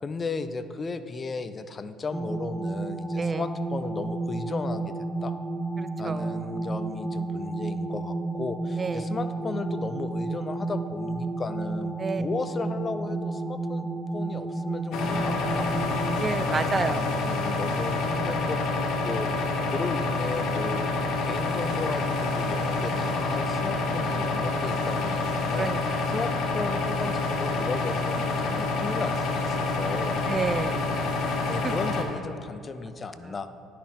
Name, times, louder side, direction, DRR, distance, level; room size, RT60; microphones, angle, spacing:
voice 1, 0.0-4.9 5.2-5.3 6.0-15.7 16.4-20.9 21.2-25.7 26.1-30.2 31.5-33.5, left 4 dB, 35° left, 11 dB, 0.5 m, -35 dB
sound 1, 2.1-16.2, right 3 dB, 15° right, 0.8 m, -32 dB
voice 2, 5.8-6.5 8.8-9.1 12.0-12.2 16.2-17.1 22.9-23.6 25.6-26.0 30.3-31.0 31.6-31.7, right 4 dB, 35° right, 12 dB, 0.4 m, -31 dB
sound 2, 14.9-32.0, left 3 dB, 65° left, 1.1 m, -27 dB
10.5 x 5.9 x 4.2 m, 2.7 s
hypercardioid pair, 65°, 0 cm